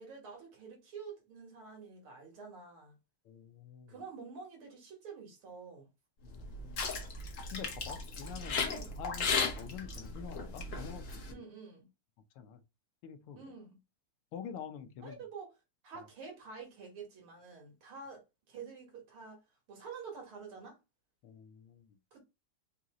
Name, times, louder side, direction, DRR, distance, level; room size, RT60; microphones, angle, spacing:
voice 1, 0.0-3.0 3.9-5.9 8.7-9.0 11.3-11.9 13.4-13.8 15.0-15.5 15.8-19.4 19.7-20.8 22.1-22.2, right 5 dB, 75° right, 2.3 m, -48 dB
voice 2, 3.2-4.0 6.2-7.0 7.5-11.4 12.3-12.6 13.0-13.5 14.3-15.2 15.9-16.1 21.2-22.0, left 8 dB, 80° left, 1.6 m, -47 dB
sound 1, 6.3-11.3, left 4 dB, 55° left, 0.9 m, -36 dB
5.1 x 2.8 x 3.0 m
omnidirectional pair, 2.4 m